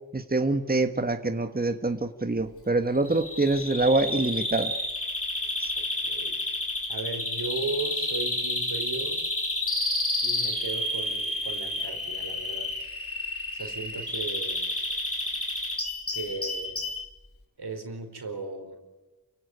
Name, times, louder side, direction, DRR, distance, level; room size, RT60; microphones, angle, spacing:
voice 1, 0.1-4.7 5.6-5.7, right 2 dB, 25° right, 8 dB, 1.5 m, -25 dB
Bird vocalization bird call bird song, 3.1-17.1, left 1 dB, 35° left, 4.0 m, -30 dB
voice 2, 5.8-6.4 6.9-9.2 10.2-12.7 13.5-14.6 16.1-16.8 17.6-18.8, right 3 dB, 85° right, 6 dB, 4.5 m, -36 dB
28.5 x 17.0 x 9.4 m, 1.1 s
cardioid pair, 45°, 39 cm